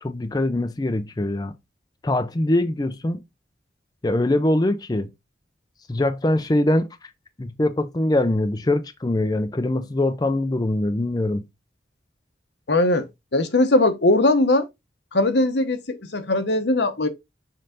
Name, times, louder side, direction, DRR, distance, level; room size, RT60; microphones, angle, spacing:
voice 1, 0.0-1.5 2.0-3.2 4.0-5.1 5.9-7.1 7.4-11.4, left 1 dB, 20° left, 0.5 m, -23 dB
voice 2, 12.7-13.1 13.3-14.7 15.1-17.1, left 2 dB, 75° left, 1.0 m, -20 dB
6.7 x 3.9 x 3.8 m
head